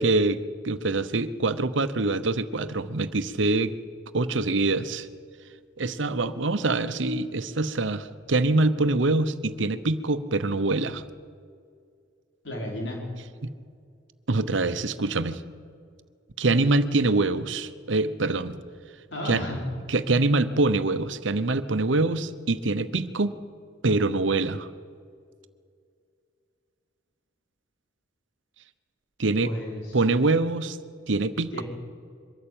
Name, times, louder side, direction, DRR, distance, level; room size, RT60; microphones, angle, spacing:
voice 1, 0.0-3.7 4.1-5.1 5.8-11.0 14.3-15.4 16.4-18.6 19.2-19.4 19.9-23.3 23.8-24.7 29.2-29.5 29.9-30.8 31.1-31.6, right 2 dB, 80° right, 12 dB, 0.9 m, -24 dB
voice 2, 12.4-13.0 19.1-19.6 29.4-30.0 31.5-31.6, left 1 dB, 75° left, -1 dB, 5.2 m, -33 dB
23.0 x 13.5 x 8.8 m, 2.2 s
head